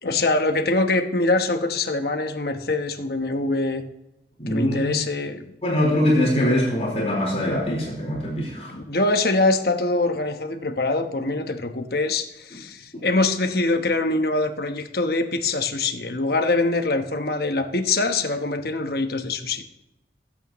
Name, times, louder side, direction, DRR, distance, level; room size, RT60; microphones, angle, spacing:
voice 1, 0.0-3.8 4.5-5.5 8.7-19.6, left 2 dB, 55° left, 6 dB, 1.1 m, -24 dB
voice 2, 4.4-4.9 5.6-8.7 12.5-12.6 12.9-13.1, left 1 dB, 35° left, -4 dB, 4.3 m, -23 dB
20.0 x 8.5 x 3.1 m, 0.91 s
head